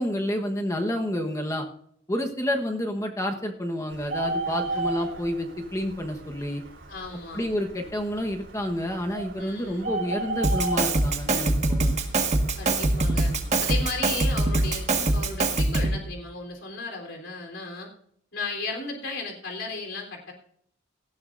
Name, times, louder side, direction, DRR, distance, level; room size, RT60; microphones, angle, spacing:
voice 1, 0.0-1.6 2.1-6.6 7.3-12.0, equal, 15° left, 3 dB, 1.2 m, -29 dB
Bird, 3.9-15.1, right 2 dB, 70° right, 4.4 m, -36 dB
voice 2, 4.4-4.8 6.9-7.4 9.4-10.0 12.6-13.3 13.6-17.9 18.3-20.3, left 3 dB, 70° left, 1 dB, 3.7 m, -35 dB
Drum kit, 10.4-16.0, right 2 dB, 35° right, 1.7 m, -23 dB
18.5 x 14.5 x 2.6 m, 0.67 s
head